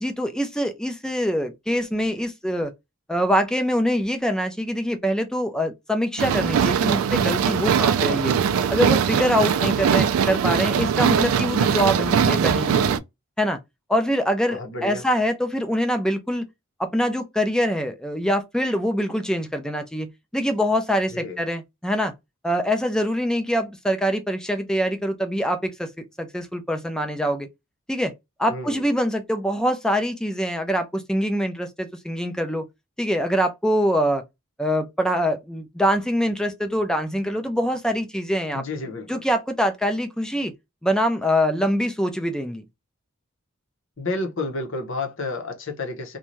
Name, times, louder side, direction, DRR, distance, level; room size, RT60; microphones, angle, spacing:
voice 1, 0.0-2.7 3.1-8.3 8.7-13.0 13.4-13.6 13.9-16.5 16.8-22.1 22.4-27.5 27.9-28.1 28.4-32.7 33.0-34.2 34.6-38.6 39.1-40.5 40.8-42.6, equal, 5° left, 0.4 m, -24 dB
sound 1, 6.2-13.0, right 7 dB, 75° right, 0.3 m, -21 dB
voice 2, 14.5-15.0 21.1-21.4 28.5-28.8 38.5-39.1 44.0-46.2, left 2 dB, 60° left, 0.8 m, -30 dB
2.6 x 2.3 x 3.1 m
head